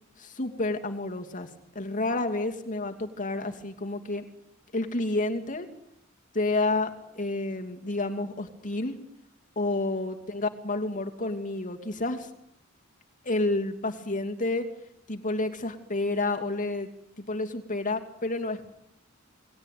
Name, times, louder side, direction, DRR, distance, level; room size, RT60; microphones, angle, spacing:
voice 1, 0.2-4.2 4.7-5.7 6.3-9.0 9.6-12.3 13.2-14.7 15.1-16.9 17.2-18.7, left 2 dB, 40° left, 5 dB, 2.7 m, -30 dB
29.0 x 20.5 x 9.4 m, 0.79 s
head